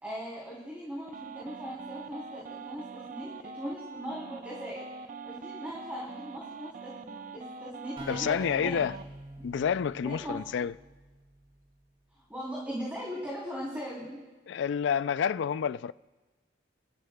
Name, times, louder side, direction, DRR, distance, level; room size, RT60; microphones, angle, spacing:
voice 1, 0.0-4.9 5.2-8.9 10.0-10.4 12.3-14.1, equal, 10° right, 3.2 m, -39 dB
sound 1, 1.1-9.0, right 5 dB, 45° right, 0.5 m, -44 dB
sound 2, 8.0-11.6, right 1 dB, 30° right, 4.3 m, -47 dB
voice 2, 8.1-9.0 9.4-10.7 14.5-15.9, left 7 dB, 65° left, 0.3 m, -29 dB
28.5 x 13.0 x 2.3 m
head